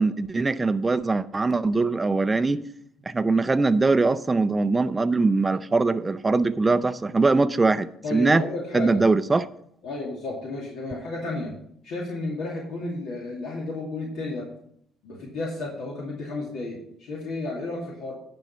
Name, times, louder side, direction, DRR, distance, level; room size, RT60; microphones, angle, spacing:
voice 1, 0.0-2.6 3.1-8.4 8.7-9.5, right 3 dB, 20° right, 11 dB, 0.5 m, -22 dB
voice 2, 8.0-9.0 9.8-11.5 11.8-14.5 15.0-18.1, left 2 dB, 75° left, -3 dB, 2.4 m, -32 dB
10.5 x 5.3 x 5.7 m, 0.70 s
cardioid pair, 90°, 0 cm